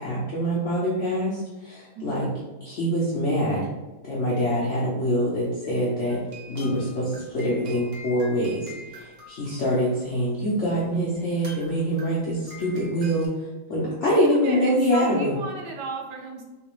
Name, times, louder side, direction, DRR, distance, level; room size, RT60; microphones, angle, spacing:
voice 1, 0.0-2.3 2.6-3.6 4.0-6.2 6.5-8.6 8.9-13.3 13.7-15.3, equal, 65° left, -7 dB, 0.7 m, -25 dB
voice 2, 2.0-2.3 13.8-16.4, right 3 dB, 75° right, 1 dB, 1.1 m, -35 dB
sound 1, 6.1-10.3 10.9-11.0 11.3-13.3, left 1 dB, 50° right, 0.7 m, -45 dB
3.8 x 2.4 x 3.0 m, 1.2 s
omnidirectional pair, 2.1 m